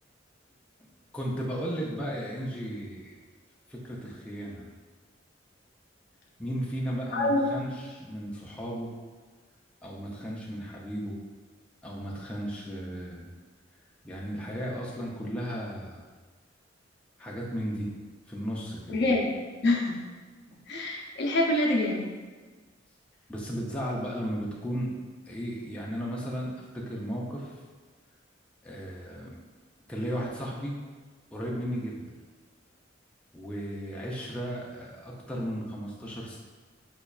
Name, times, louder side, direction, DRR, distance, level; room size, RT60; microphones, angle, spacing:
voice 1, 1.1-3.2 3.7-4.6 6.4-8.9 9.8-11.1 11.8-13.3 14.0-16.0 17.2-17.9 18.3-19.1 23.3-24.9 25.3-27.5 28.6-29.3 29.9-30.8 31.3-32.0 33.3-36.4, equal, 5° left, -5 dB, 0.4 m, -35 dB
voice 2, 7.1-7.4 18.9-19.3 19.6-20.0 20.7-22.0, left 2 dB, 60° left, -1 dB, 0.5 m, -25 dB
5.1 x 2.2 x 2.3 m, 1.4 s
head